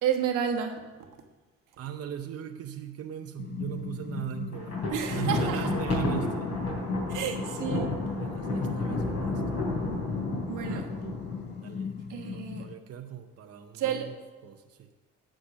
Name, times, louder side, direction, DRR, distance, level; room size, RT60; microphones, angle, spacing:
voice 1, 0.0-0.7 4.9-5.6 7.1-7.9 10.5-10.8 12.1-12.6 13.7-14.1, right 8 dB, 85° right, 3 dB, 1.3 m, -30 dB
voice 2, 1.8-4.8 5.1-6.5 8.2-9.3 10.7-10.9 11.6-11.9 12.3-14.2 14.4-14.9, right 10 dB, 55° right, 4 dB, 0.7 m, -39 dB
sound 1, 3.4-12.7, left 7 dB, 35° left, 0.6 m, -38 dB
Thunder, 4.5-11.8, left 2 dB, 55° left, 3.5 m, -31 dB
9.6 x 5.0 x 7.2 m, 1.3 s
cardioid pair, 90°, 30 cm